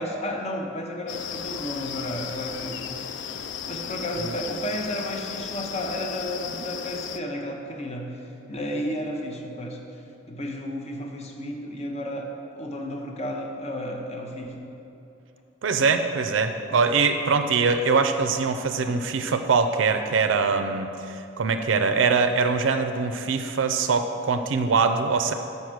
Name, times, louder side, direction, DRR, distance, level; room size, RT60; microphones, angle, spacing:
voice 1, 0.0-3.0 3.7-8.1 8.5-9.8 10.3-14.6, equal, 35° left, 2 dB, 0.7 m, -32 dB
sound 1, 1.1-7.2, left 8 dB, 65° left, 0.3 m, -35 dB
voice 2, 15.6-25.3, right 4 dB, 70° right, 7 dB, 0.4 m, -23 dB
6.4 x 5.4 x 6.0 m, 2.8 s
head